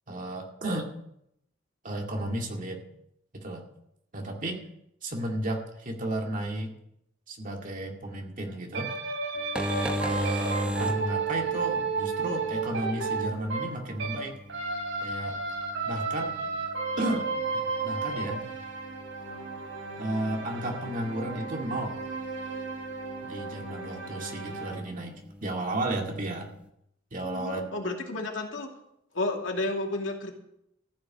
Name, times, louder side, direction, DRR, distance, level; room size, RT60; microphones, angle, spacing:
voice 1, 0.1-0.9 1.8-2.8 3.3-3.6 4.1-4.6 5.0-6.7 7.3-8.9 10.0-14.4 15.0-15.4 15.9-16.4 17.0-17.3 17.8-18.4 20.0-22.0 23.2-26.5 27.1-27.7, right 1 dB, 40° right, 1 dB, 2.2 m, -33 dB
sound 1, 8.7-14.2 14.5-24.7, right 4 dB, 70° right, 4.8 m, -33 dB
sound 2, 9.4-26.7, equal, 5° right, 0.9 m, -39 dB
voice 2, 27.2-28.7 29.1-30.3, left 2 dB, 75° left, 1 dB, 2.6 m, -31 dB
14.5 x 7.1 x 8.6 m, 0.77 s
head